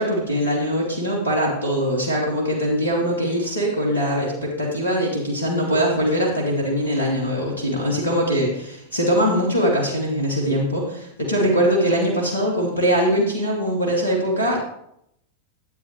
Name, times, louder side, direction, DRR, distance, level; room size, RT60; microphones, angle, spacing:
voice 1, 0.0-14.6, equal, 80° left, -2 dB, 2.5 m, -22 dB
12.0 x 8.8 x 3.3 m, 0.74 s
figure-of-eight pair, 90°, 0 cm